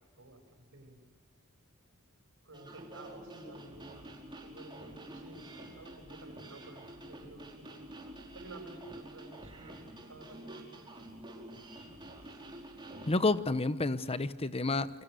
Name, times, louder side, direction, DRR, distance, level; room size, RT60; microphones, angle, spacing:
voice 1, 0.2-1.0 2.4-7.8 8.3-9.8 10.1-11.0, right 2 dB, 65° right, 7.3 m, -52 dB
sound 1, 2.5-13.2, right 1 dB, 20° right, 5.0 m, -48 dB
voice 2, 13.1-15.0, left 2 dB, 25° left, 1.0 m, -30 dB
29.5 x 24.0 x 6.8 m
head